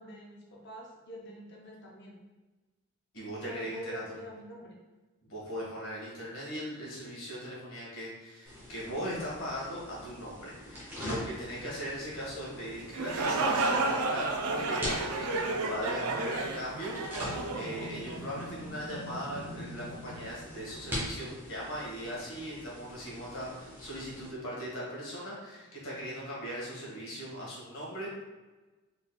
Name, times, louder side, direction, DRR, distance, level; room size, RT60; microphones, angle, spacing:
voice 1, 0.0-2.2 3.4-4.8, equal, 50° left, -2 dB, 0.6 m, -45 dB
voice 2, 3.1-4.0 5.3-28.1, equal, 70° left, -5 dB, 1.5 m, -39 dB
sound 1, 8.5-24.3, equal, 10° right, 1.1 m, -43 dB
sound 2, 12.8-18.5, right 3 dB, 85° right, 0.5 m, -31 dB
4.0 x 3.9 x 2.2 m, 1.2 s
head